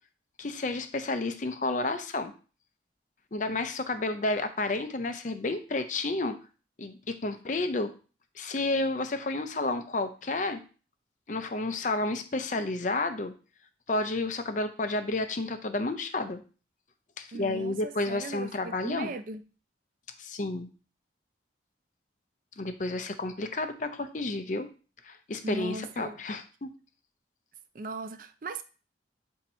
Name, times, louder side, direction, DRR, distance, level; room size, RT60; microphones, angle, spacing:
voice 1, 0.4-2.3 3.3-6.4 6.8-7.9 8.4-10.6 11.3-13.3 13.9-16.4 17.2-19.1 20.2-20.7 22.6-24.7 25.0-26.7, left 2 dB, 45° left, 0.6 m, -31 dB
voice 2, 17.3-19.4 25.4-26.2 27.7-28.6, right 2 dB, 45° right, 0.4 m, -38 dB
7.9 x 2.8 x 4.3 m
head